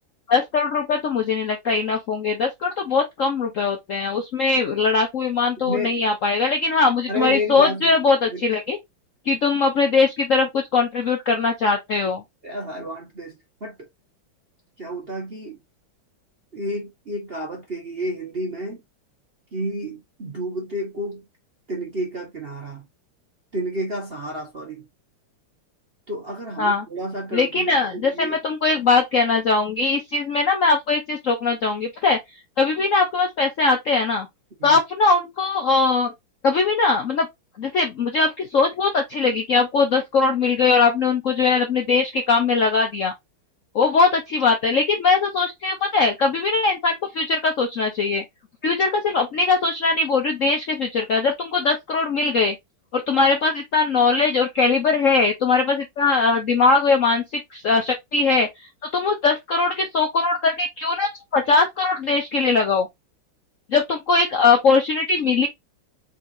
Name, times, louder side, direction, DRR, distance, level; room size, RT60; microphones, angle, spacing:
voice 1, 0.3-8.8 9.3-12.2 26.6-26.9 27.3-32.2 32.6-34.3 34.6-36.1 36.4-37.3 37.6-43.1 43.7-48.2 48.6-52.5 52.9-58.5 58.9-62.9 63.7-65.5, left 4 dB, 60° left, 0.8 m, -20 dB
voice 2, 5.6-6.0 7.1-8.0 8.3-8.4 12.4-13.9 14.8-15.6 16.5-18.8 19.5-21.2 21.7-22.9 23.5-24.9 26.1-28.4 34.6-34.8, equal, 40° right, 0.9 m, -30 dB
4.4 x 3.6 x 2.5 m
omnidirectional pair, 2.2 m